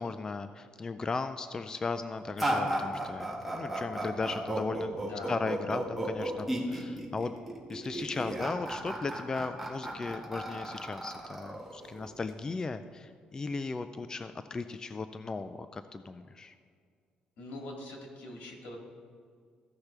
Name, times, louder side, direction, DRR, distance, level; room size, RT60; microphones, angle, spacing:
voice 1, 0.0-5.0 5.3-7.3 7.7-16.5, left 4 dB, 25° left, 10 dB, 0.3 m, -36 dB
sound 1, 2.4-12.3, right 1 dB, 5° right, 1.8 m, -34 dB
voice 2, 5.1-5.4 17.4-18.8, left 2 dB, 85° left, 0 dB, 2.2 m, -43 dB
15.0 x 5.8 x 3.3 m, 2.1 s
cardioid pair, 110°, 3 cm